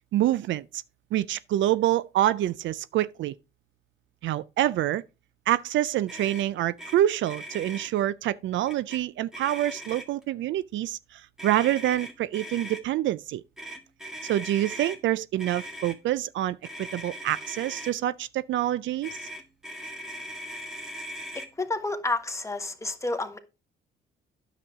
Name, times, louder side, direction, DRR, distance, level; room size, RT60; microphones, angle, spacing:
voice 1, 0.1-0.8 1.1-3.3 4.2-5.0 5.5-13.4 14.2-19.2, right 13 dB, 70° right, 0.4 m, -26 dB
Motor vehicle (road), 6.1-6.5 6.8-7.0 7.2-7.9 8.7-9.0 9.3-10.2 11.4-12.8 13.6-15.0 15.4-16.0 16.6-17.9 19.0-21.5, right 1 dB, 5° right, 1.8 m, -39 dB
voice 2, 21.3-23.4, left 2 dB, 15° left, 1.4 m, -30 dB
9.8 x 7.2 x 3.6 m
cardioid pair, 90°, 20 cm